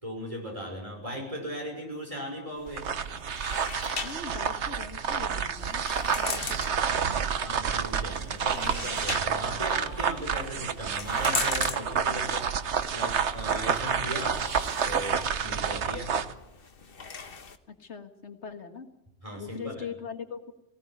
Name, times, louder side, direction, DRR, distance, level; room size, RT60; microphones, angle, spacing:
voice 1, 0.0-2.9 7.4-12.5 12.9-14.4 14.8-16.1 19.2-19.9, equal, 30° right, 1 dB, 5.9 m, -38 dB
sound 1, 2.6-17.6, left 5 dB, 55° left, 1.4 m, -41 dB
sound 2, 2.7-16.3, right 7 dB, 85° right, 1.3 m, -29 dB
voice 2, 4.0-5.9 6.2-7.8 17.8-18.9 19.4-20.5, left 6 dB, 90° left, 7 dB, 1.9 m, -42 dB
18.5 x 18.0 x 9.4 m, 0.88 s
omnidirectional pair, 1.1 m